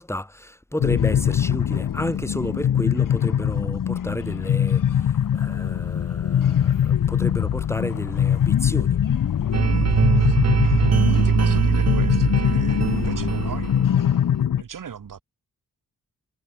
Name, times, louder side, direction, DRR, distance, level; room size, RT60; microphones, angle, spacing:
voice 1, 0.0-9.0, left 1 dB, 10° left, 6.0 m, -31 dB
sound 1, 0.8-14.6, left 9 dB, 75° left, 1.2 m, -22 dB
sound 2, 4.4-13.6, left 5 dB, 45° left, 2.8 m, -40 dB
sound 3, 9.5-14.1, right 7 dB, 50° right, 1.3 m, -21 dB
voice 2, 10.8-15.2, right 7 dB, 75° right, 3.3 m, -40 dB
wide cardioid pair, 150°, 33 cm